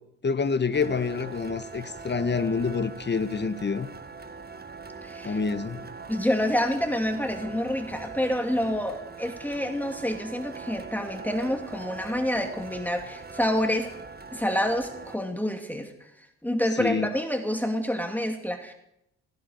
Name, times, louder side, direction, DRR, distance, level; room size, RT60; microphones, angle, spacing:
voice 1, 0.2-3.9 5.2-5.9 16.8-17.1, left 5 dB, 25° left, 1.4 m, -27 dB
sound 1, 0.7-15.2, right 4 dB, 25° right, 1.6 m, -42 dB
voice 2, 5.0-5.4 6.1-13.9 14.3-15.9 16.4-18.7, left 1 dB, 5° left, 2.4 m, -28 dB
18.0 x 15.5 x 4.7 m
hypercardioid pair, 50°, 39 cm